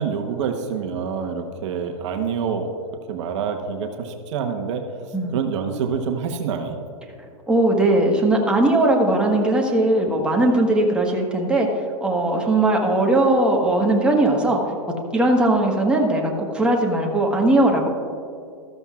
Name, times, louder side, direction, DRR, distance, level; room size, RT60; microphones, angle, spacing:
voice 1, 0.0-2.7 3.1-4.9 5.3-6.8, right 6 dB, 55° right, 4 dB, 1.1 m, -26 dB
voice 2, 7.5-11.7 12.0-14.6 15.1-17.9, right 2 dB, 5° right, -1 dB, 1.4 m, -19 dB
13.5 x 13.5 x 2.4 m, 2.3 s
hypercardioid pair, 125°, 18 cm